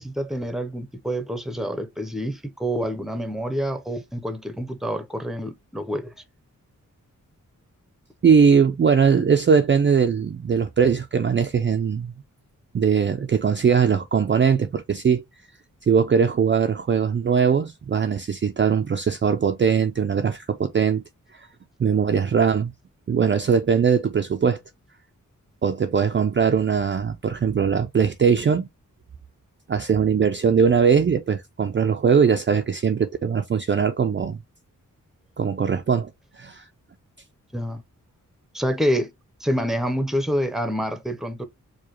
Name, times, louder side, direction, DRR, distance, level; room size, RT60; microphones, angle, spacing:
voice 1, 0.0-6.1 37.5-37.8 38.5-39.1 39.4-41.5, equal, ahead, 0.7 m, -27 dB
voice 2, 8.2-12.1 12.7-15.2 15.8-21.0 21.8-22.7 23.1-24.6 25.6-28.7 29.7-34.4 35.4-36.1 36.4-36.6, right 6 dB, 35° right, 0.4 m, -20 dB
4.8 x 2.2 x 2.9 m
wide cardioid pair, 90°, 32 cm